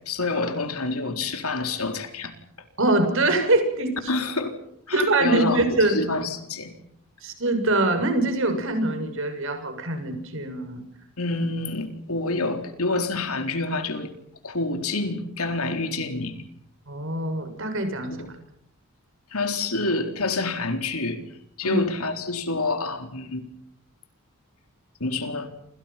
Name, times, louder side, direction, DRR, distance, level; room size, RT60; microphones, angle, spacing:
voice 1, 0.0-2.3 4.1-4.6 4.9-6.7 11.2-14.1 14.4-16.4 18.1-18.3 19.3-21.2 21.6-23.5 25.0-25.5, left 3 dB, 80° left, 6 dB, 4.0 m, -27 dB
voice 2, 2.8-3.9 4.9-6.0 7.2-10.8 16.9-18.2 21.6-21.8, right 2 dB, 60° right, 7 dB, 6.8 m, -23 dB
29.0 x 27.5 x 5.9 m, 0.72 s
head